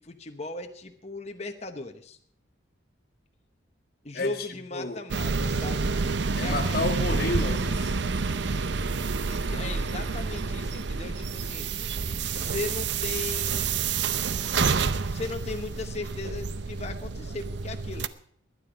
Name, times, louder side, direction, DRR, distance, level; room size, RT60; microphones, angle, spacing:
voice 1, 0.0-2.2 4.0-5.9 6.3-6.8 9.3-11.7 12.3-13.9 15.1-18.1, left 3 dB, 35° left, 1.0 m, -37 dB
voice 2, 4.1-4.5 4.7-5.0 6.4-7.9, left 2 dB, 50° left, 1.6 m, -30 dB
sound 1, 5.1-18.1, right 4 dB, 65° right, 0.6 m, -28 dB
21.0 x 9.8 x 5.1 m
head